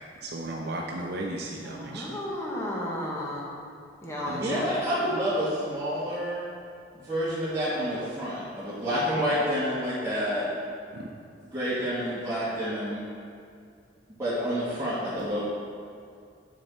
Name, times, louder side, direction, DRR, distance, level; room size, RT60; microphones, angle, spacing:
voice 1, 0.2-2.2 4.2-4.6 10.9-11.1, right 1 dB, 60° right, 0 dB, 0.6 m, -35 dB
voice 2, 1.6-3.5 4.0-4.7, left 1 dB, 15° left, -5 dB, 1.6 m, -33 dB
voice 3, 4.4-6.5 6.9-10.4 11.5-13.1 14.2-15.4, equal, 20° right, -14 dB, 2.0 m, -28 dB
7.4 x 6.5 x 4.4 m, 2.4 s
head